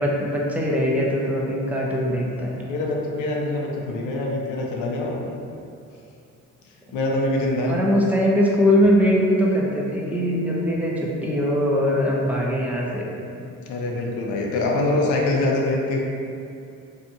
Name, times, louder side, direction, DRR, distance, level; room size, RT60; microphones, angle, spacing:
voice 1, 0.0-2.6 7.7-13.0, equal, 5° right, -4 dB, 0.4 m, -21 dB
voice 2, 2.1-5.3 6.9-7.8 13.7-16.0, left 2 dB, 80° left, -1 dB, 0.5 m, -24 dB
2.7 x 2.3 x 2.6 m, 2.5 s
cardioid pair, 90°, 30 cm